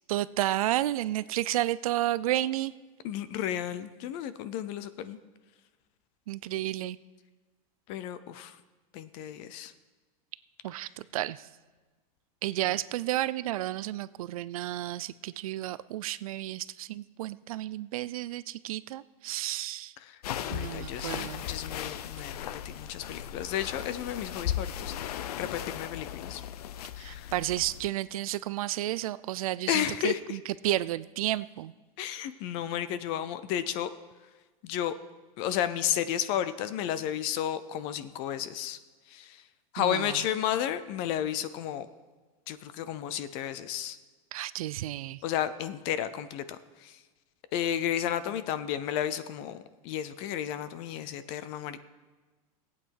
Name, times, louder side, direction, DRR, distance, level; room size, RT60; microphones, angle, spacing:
voice 1, 0.1-2.7 6.3-7.0 10.6-11.5 12.4-19.9 20.5-21.4 27.0-31.7 39.8-40.2 44.3-45.2, right 14 dB, 70° right, 17 dB, 0.5 m, -32 dB
voice 2, 3.0-5.2 7.9-8.6 8.9-9.7 20.0-26.4 27.0-27.3 29.7-30.4 32.0-33.9 34.6-34.9 35.4-38.8 39.1-39.4 39.7-41.9 42.5-44.0 45.2-46.9 47.5-51.8, left 10 dB, 30° left, 14 dB, 0.5 m, -33 dB
sound 1, 20.2-27.9, left 11 dB, 85° left, 0.6 m, -37 dB
18.0 x 8.4 x 4.6 m, 1.3 s
supercardioid pair, 175°, 19 cm